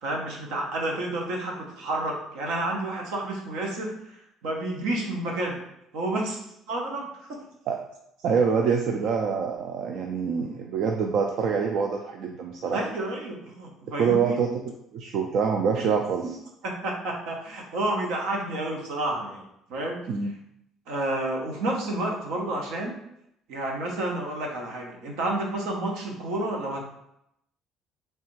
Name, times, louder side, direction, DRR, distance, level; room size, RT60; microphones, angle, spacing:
voice 1, 0.0-5.6 5.9-6.4 6.7-7.4 12.7-14.4 16.6-19.4 19.7-20.0 20.9-23.0 23.5-26.8, right 2 dB, 85° right, 1 dB, 0.9 m, -30 dB
voice 2, 8.2-12.9 14.0-14.5 14.9-16.3 20.1-20.3, right 6 dB, 65° right, 3 dB, 0.4 m, -25 dB
3.3 x 3.2 x 3.1 m, 0.80 s
cardioid pair, 110°, 0 cm